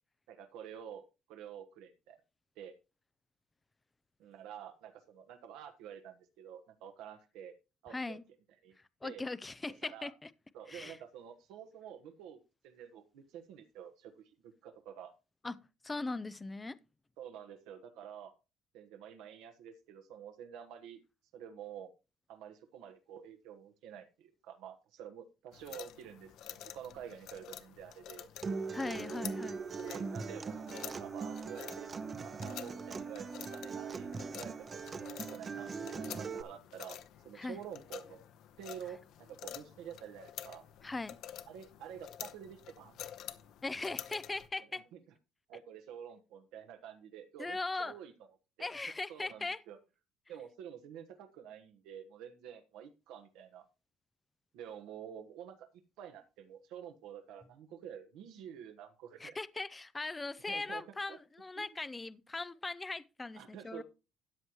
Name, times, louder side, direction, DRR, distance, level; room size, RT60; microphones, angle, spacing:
voice 1, 0.3-2.2 2.6-2.7 4.2-7.5 7.8-8.2 8.6-8.7 9.0-9.2 9.7-10.1 10.5-15.1 17.2-18.3 18.7-21.0 21.3-21.9 22.3-28.3 29.8-34.9 35.3-37.0 37.2-38.3 38.6-39.0 39.3-40.6 41.5-43.2 44.7-45.0 45.5-48.3 48.6-48.7 49.1-49.8 50.3-53.6 54.5-55.5 56.0-59.4 60.5-60.8 61.1-61.2 61.6-61.7 63.4-63.8, right 9 dB, 75° right, 1.2 m, -49 dB
voice 2, 7.9-8.2 9.0-10.3 10.7-11.0 15.4-16.8 28.7-29.7 37.4-37.6 40.8-41.2 43.6-44.9 47.4-47.9 48.6-49.6 59.2-63.8, left 3 dB, 10° left, 0.4 m, -39 dB
sound 1, 25.5-44.5, left 11 dB, 55° left, 0.9 m, -49 dB
Acoustic guitar, 28.4-36.4, right 5 dB, 20° right, 0.7 m, -40 dB
13.5 x 9.5 x 3.0 m
cardioid pair, 175°, 0 cm